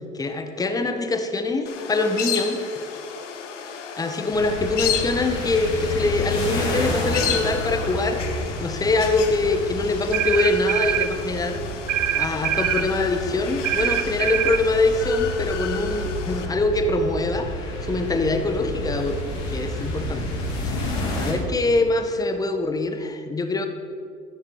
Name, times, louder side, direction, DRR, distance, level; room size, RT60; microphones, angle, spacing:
voice 1, 0.1-2.6 4.0-8.2 8.6-11.6 12.1-19.2 19.5-20.8 21.2-23.7, left 2 dB, 10° left, 7 dB, 0.9 m, -24 dB
sound 1, 1.7-16.5, left 8 dB, 65° left, 1.2 m, -33 dB
sound 2, 4.3-21.3, left 1 dB, 45° left, 2.6 m, -30 dB
sound 3, 10.1-11.1 11.9-12.9 13.6-14.6, right 12 dB, 75° right, 0.6 m, -23 dB
11.5 x 10.5 x 4.2 m, 2.3 s
figure-of-eight pair, 75°, 38 cm